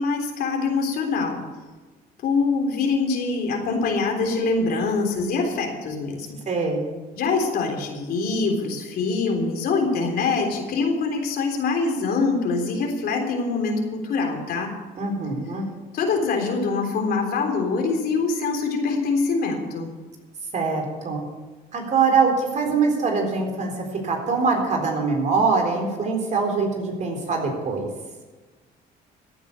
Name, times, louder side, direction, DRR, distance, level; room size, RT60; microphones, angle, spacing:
voice 1, 0.0-1.4 2.2-6.4 7.2-14.7 15.9-19.9, left 4 dB, 65° left, 2 dB, 3.5 m, -24 dB
voice 2, 6.5-6.9 15.0-15.7 20.5-21.2 21.7-27.9, right 4 dB, 45° right, 3 dB, 3.9 m, -23 dB
15.0 x 9.3 x 6.9 m, 1.3 s
cardioid pair, 110°, 17 cm